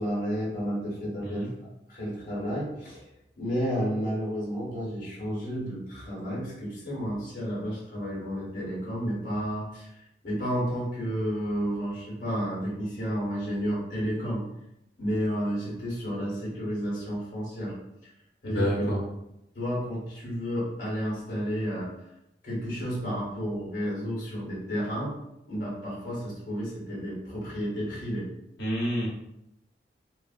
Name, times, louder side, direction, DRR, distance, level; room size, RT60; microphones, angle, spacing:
voice 1, 0.0-1.5 1.9-3.0 3.3-9.9 10.2-14.4 15.0-17.8 18.4-18.9 19.5-21.9 22.4-25.2 25.5-28.3, equal, 50° left, -7 dB, 1.2 m, -31 dB
voice 2, 18.4-19.0 28.6-29.1, equal, 70° left, -4 dB, 0.9 m, -28 dB
3.0 x 2.4 x 2.4 m, 0.82 s
head